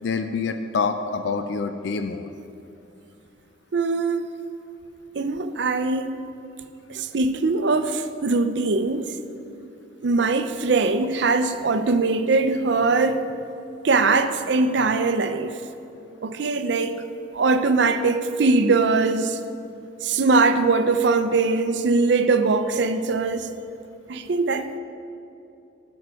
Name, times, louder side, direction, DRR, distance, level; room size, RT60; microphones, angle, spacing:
voice 1, 0.0-2.3, left 4 dB, 65° left, 8 dB, 0.4 m, -26 dB
voice 2, 3.7-4.3 5.1-6.3 6.9-9.2 10.0-13.3 13.8-15.5 16.2-17.0 17.3-19.4 20.0-23.5 24.1-24.8, right 3 dB, 60° right, 9 dB, 0.5 m, -21 dB
12.0 x 4.7 x 6.2 m, 2.7 s
head